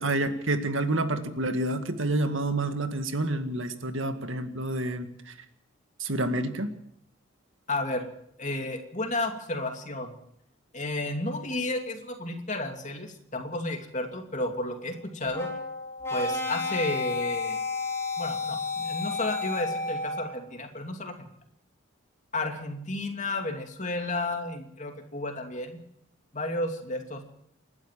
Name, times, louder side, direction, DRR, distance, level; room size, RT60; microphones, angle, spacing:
voice 1, 0.0-5.3 6.0-6.7, right 2 dB, 75° right, 8 dB, 2.0 m, -28 dB
voice 2, 7.7-8.1 8.4-10.1 10.7-15.5 16.1-17.6 18.2-21.3 22.3-25.8 26.3-27.2, left 2 dB, 35° left, 4 dB, 2.7 m, -32 dB
sound 1, 15.3-20.4, left 3 dB, 15° left, 3.5 m, -31 dB
28.5 x 12.0 x 7.6 m, 0.72 s
head